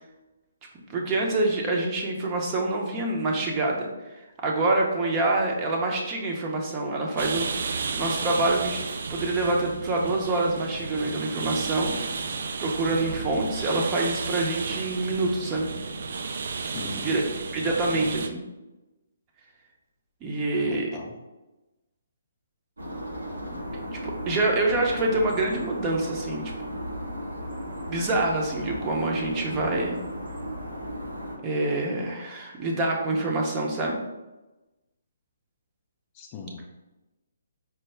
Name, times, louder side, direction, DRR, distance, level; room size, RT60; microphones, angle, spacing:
voice 1, 0.9-8.8 9.1-11.9 12.6-15.7 17.0-17.2 17.5-18.4 20.2-20.9 23.9-26.4 26.7-26.8 27.9-30.0 31.4-34.0, right 2 dB, 25° right, 0 dB, 0.6 m, -26 dB
sound 1, 7.2-18.3, right 4 dB, 60° right, 0.3 m, -33 dB
voice 2, 16.6-17.1 17.7-18.1 20.7-21.2 36.1-36.7, left 4 dB, 30° left, 1 dB, 0.4 m, -40 dB
sound 2, 22.8-31.4, equal, 90° right, 0.9 m, -35 dB
4.5 x 2.0 x 3.2 m, 1.1 s
hypercardioid pair, 145°, 0 cm